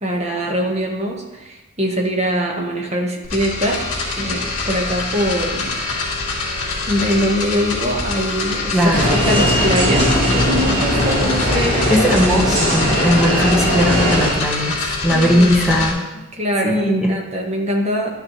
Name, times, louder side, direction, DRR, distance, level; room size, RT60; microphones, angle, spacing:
voice 1, 0.0-3.8 4.2-5.7 6.9-12.1 15.1-15.5 16.3-18.1, equal, 30° right, 0 dB, 1.4 m, -22 dB
sound 1, 3.2-15.9, left 3 dB, 35° left, 3.5 m, -25 dB
voice 2, 8.7-9.1 11.9-16.0 16.6-17.1, equal, 5° right, -2 dB, 1.2 m, -18 dB
sound 2, 8.9-14.3, equal, 75° right, 3.0 m, -19 dB
12.5 x 6.4 x 3.2 m, 1.1 s
head